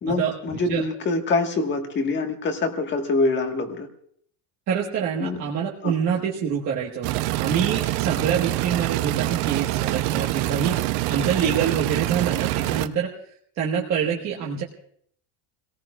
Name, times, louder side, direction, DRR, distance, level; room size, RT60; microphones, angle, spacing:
voice 1, 0.0-3.9 5.2-5.4 5.8-5.9, left 3 dB, 25° left, 5 dB, 1.5 m, -25 dB
voice 2, 4.7-13.1 13.6-14.6, right 7 dB, 40° right, -3 dB, 1.4 m, -26 dB
sound 1, 7.0-12.9, right 16 dB, 60° right, 0.7 m, -25 dB
28.5 x 18.0 x 2.4 m, 0.64 s
cardioid pair, 160°, 43 cm